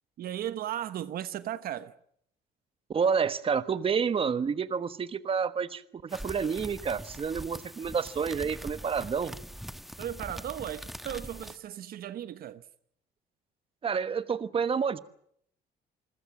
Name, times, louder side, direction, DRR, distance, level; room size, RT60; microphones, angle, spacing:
voice 1, 0.2-1.9 10.0-12.6, right 11 dB, 60° right, 1.1 m, -36 dB
voice 2, 2.9-9.4 13.8-15.0, right 6 dB, 35° right, 1.3 m, -29 dB
sound 1, 6.1-11.6, equal, ahead, 1.3 m, -43 dB
28.0 x 21.0 x 7.3 m
cardioid pair, 110°, 17 cm